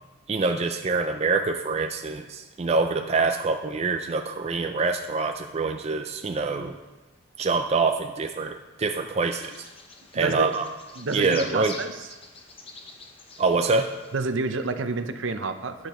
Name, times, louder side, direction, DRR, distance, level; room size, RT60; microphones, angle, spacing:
voice 1, 0.3-6.8 7.4-9.7 10.1-10.7 11.1-11.8 13.4-13.9, right 4 dB, 30° right, 6 dB, 0.4 m, -25 dB
Bird vocalization bird call bird song, 9.2-14.3, left 4 dB, 25° left, 0.8 m, -45 dB
voice 2, 10.1-10.5 11.0-12.1 14.1-15.9, right 3 dB, 70° right, 9 dB, 0.7 m, -29 dB
13.0 x 8.9 x 3.1 m, 1.1 s
head